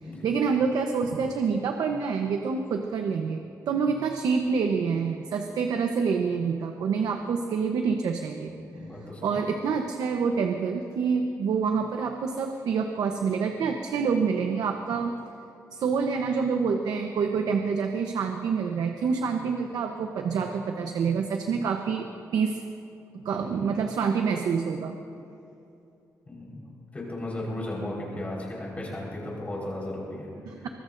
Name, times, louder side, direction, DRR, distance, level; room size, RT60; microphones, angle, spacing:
voice 1, 0.2-8.6 9.2-15.2 15.7-22.1 22.3-22.6 23.2-25.0 30.5-30.6, right 5 dB, 80° right, 4 dB, 0.9 m, -27 dB
voice 2, 8.6-9.2 26.3-26.6 26.9-30.3, left 1 dB, 20° left, -4 dB, 4.6 m, -35 dB
24.0 x 20.5 x 2.6 m, 2.7 s
wide cardioid pair, 175°, 6 cm